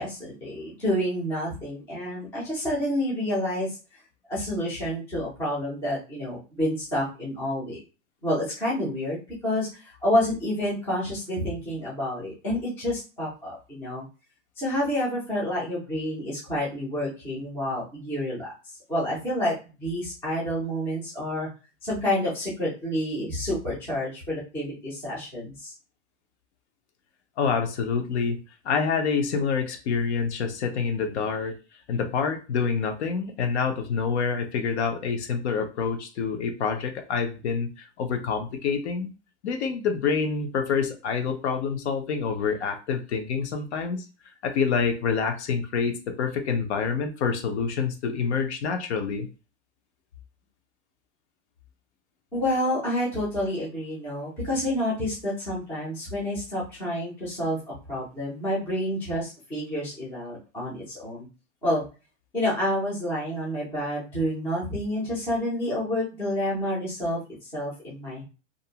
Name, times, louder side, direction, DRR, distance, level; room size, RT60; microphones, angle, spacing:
voice 1, 0.0-4.0 4.3-7.8 8.2-14.1 14.6-19.5 19.8-21.5 21.8-25.7 52.3-57.6 57.9-61.3 61.6-61.8 62.3-68.2, left 1 dB, 5° left, -8 dB, 0.4 m, -29 dB
voice 2, 27.4-28.4 28.6-31.6 31.9-39.1 39.4-44.1 44.4-49.3, left 5 dB, 65° left, 5 dB, 0.6 m, -27 dB
2.5 x 2.0 x 2.7 m, 0.32 s
supercardioid pair, 165°, 36 cm